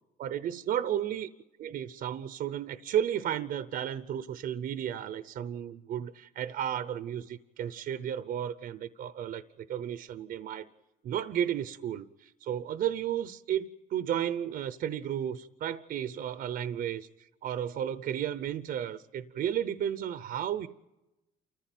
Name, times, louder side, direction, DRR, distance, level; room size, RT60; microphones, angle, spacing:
voice 1, 0.2-1.3 1.6-9.4 9.7-10.7 11.0-17.1 17.4-20.7, right 10 dB, 60° right, 13 dB, 0.8 m, -33 dB
29.0 x 14.5 x 9.2 m, 0.99 s
cardioid pair, 110°, 17 cm